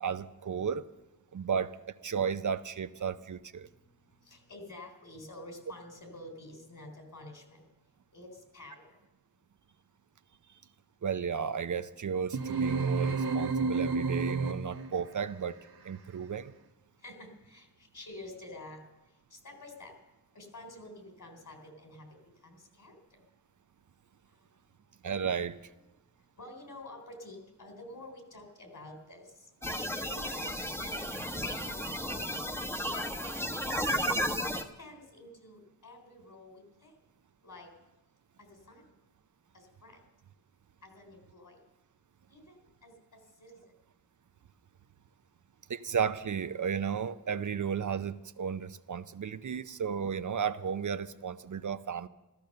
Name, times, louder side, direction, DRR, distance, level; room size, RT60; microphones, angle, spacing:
voice 1, 0.0-0.9 1.3-1.8 2.0-3.7 11.0-15.6 15.8-16.5 25.0-25.6 45.7-52.1, right 7 dB, 55° right, 12 dB, 0.6 m, -33 dB
voice 2, 4.3-7.6 8.1-8.9 17.0-17.7 17.9-18.8 19.3-19.9 20.3-22.1 22.4-23.0 26.4-29.3 30.0-33.4 34.8-36.9 37.4-37.7 38.4-38.9 39.5-40.0 40.8-41.6 42.3-43.6, left 1 dB, 55° left, 4 dB, 3.9 m, -49 dB
sound 1, 12.3-15.0, right 4 dB, 80° right, 1.4 m, -30 dB
sound 2, 29.6-34.6, equal, 5° left, 1.1 m, -33 dB
14.0 x 14.0 x 6.7 m, 1.0 s
cardioid pair, 60°, 37 cm